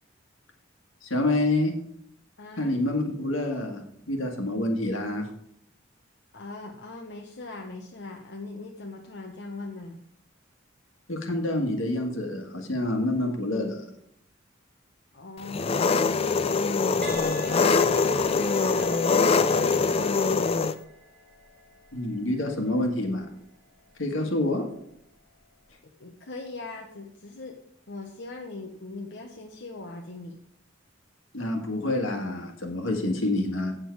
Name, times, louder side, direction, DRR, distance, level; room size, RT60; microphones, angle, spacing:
voice 1, 1.0-1.7 2.6-5.3 11.1-13.8 21.9-23.3 24.0-24.6 31.3-33.7, left 1 dB, 85° left, 3 dB, 1.8 m, -27 dB
voice 2, 2.4-2.7 6.3-10.0 15.1-16.6 17.1-19.0 19.3-20.7 24.1-24.3 25.8-27.6 27.9-30.4, left 2 dB, 60° left, 1 dB, 1.0 m, -41 dB
Engine, 15.5-20.7, left 4 dB, 30° left, 0.4 m, -23 dB
Crash cymbal, 17.0-24.7 25.3-25.6, left 1 dB, 5° left, 2.5 m, -46 dB
8.2 x 7.6 x 4.6 m, 0.71 s
head